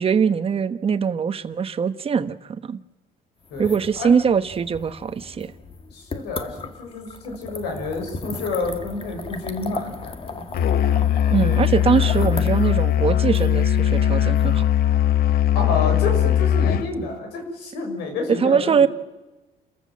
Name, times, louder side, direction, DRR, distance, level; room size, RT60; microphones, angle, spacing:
voice 1, 0.0-2.8 3.6-5.5 11.3-14.6 18.3-18.9, right 6 dB, 35° right, 12 dB, 1.1 m, -22 dB
sound 1, 3.4-15.3, left 4 dB, 30° left, 1.7 m, -37 dB
voice 2, 3.5-4.1 5.9-10.4 15.5-18.9, left 3 dB, 90° left, 3 dB, 6.3 m, -29 dB
Musical instrument, 10.5-16.9, left 11 dB, 65° left, 1.0 m, -19 dB
29.0 x 14.0 x 7.4 m, 1.1 s
cardioid pair, 110°, 17 cm